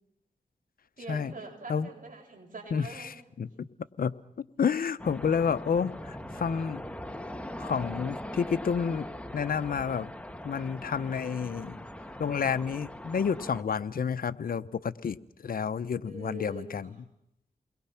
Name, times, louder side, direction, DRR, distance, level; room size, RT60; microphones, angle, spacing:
voice 1, 1.0-3.4 16.0-17.0, right 2 dB, 65° right, 1 dB, 7.5 m, -44 dB
voice 2, 2.7-3.7 4.0-4.2 4.6-6.8 7.6-9.1 9.3-10.1 10.4-11.8 12.2-16.9, left 6 dB, 80° left, 14 dB, 0.9 m, -30 dB
sound 1, 5.0-13.6, left 1 dB, 10° left, 1.9 m, -41 dB
29.5 x 21.5 x 5.8 m, 0.81 s
cardioid pair, 50°, 15 cm